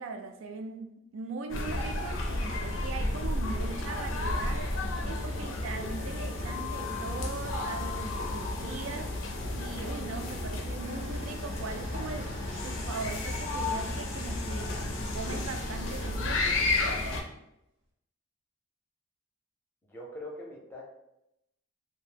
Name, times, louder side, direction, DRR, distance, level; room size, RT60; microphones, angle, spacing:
voice 1, 0.0-12.3 12.6-14.8 15.1-16.5, right 4 dB, 65° right, 0.3 m, -40 dB
sound 1, 1.5-17.2, left 2 dB, 65° left, 0.5 m, -32 dB
sound 2, 10.8-16.3, right 1 dB, 30° right, 0.6 m, -49 dB
voice 2, 19.8-20.9, left 1 dB, 10° left, 0.6 m, -42 dB
2.7 x 2.1 x 3.3 m
head